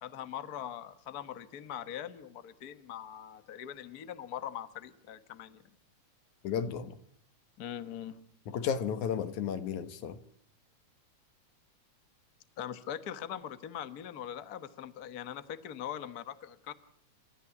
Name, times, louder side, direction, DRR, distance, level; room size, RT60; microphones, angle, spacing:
voice 1, 0.0-5.6 7.6-8.2 12.6-16.7, left 10 dB, 55° left, 1.0 m, -41 dB
voice 2, 6.4-7.0 8.5-10.2, left 7 dB, 75° left, 2.7 m, -33 dB
29.0 x 13.5 x 8.5 m
omnidirectional pair, 3.5 m